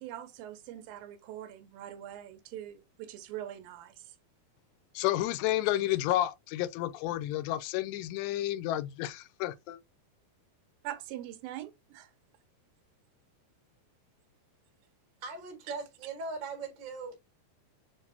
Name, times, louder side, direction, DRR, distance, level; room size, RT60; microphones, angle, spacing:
voice 1, 0.0-4.1 10.8-12.1 15.7-15.8, right 12 dB, 75° right, 2.2 m, -43 dB
voice 2, 5.0-9.8, left 14 dB, 90° left, 2.7 m, -31 dB
voice 3, 15.2-17.2, right 4 dB, 45° right, 1.6 m, -39 dB
7.3 x 2.5 x 2.6 m
omnidirectional pair, 4.8 m